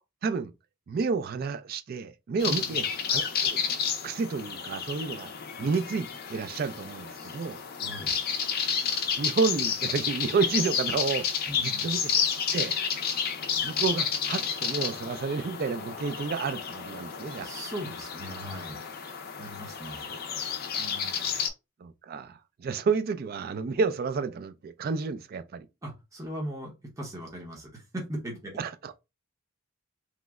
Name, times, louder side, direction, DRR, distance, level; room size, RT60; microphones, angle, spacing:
voice 1, 0.9-3.6 4.0-5.3 5.6-7.6 9.2-11.3 11.6-12.2 12.5-12.7 13.6-17.5 20.1-20.2 21.8-25.7 28.6-28.9, right 4 dB, 45° right, 0.3 m, -30 dB
sound 1, 2.4-21.5, left 7 dB, 45° left, 0.5 m, -31 dB
voice 2, 2.4-2.8 7.7-8.2 11.5-11.9 17.4-18.9 19.4-20.1 20.8-21.4 25.8-28.6, right 1 dB, 15° right, 0.8 m, -39 dB
3.0 x 2.0 x 3.5 m
head